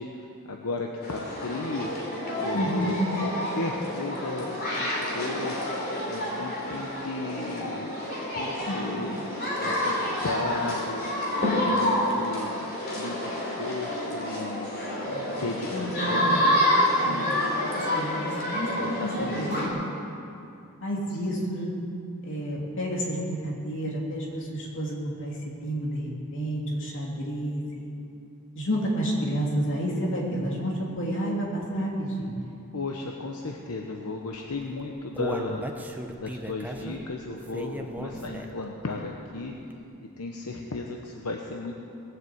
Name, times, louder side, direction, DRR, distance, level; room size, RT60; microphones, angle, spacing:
voice 1, 0.0-1.9 2.4-5.7 6.1-7.9 8.3-11.1 11.6-14.7 15.3-16.4 16.9-17.3 18.8-19.6 32.7-39.5 40.0-41.8, left 2 dB, 85° left, 1 dB, 1.0 m, -35 dB
sound 1, 1.0-19.7, left 1 dB, 45° left, 3.4 m, -28 dB
voice 2, 2.5-2.9 8.7-8.8 15.1-16.4 17.0-17.2 17.6-18.9 19.3-19.5 19.7-19.8 20.8-21.7 22.2-27.9 28.5-32.4, equal, 60° left, -3 dB, 3.0 m, -30 dB
Human voice, 34.5-38.7 39.1-39.2 39.7-39.8, equal, 10° right, 0.8 m, -36 dB
19.5 x 7.9 x 7.9 m, 2.7 s
head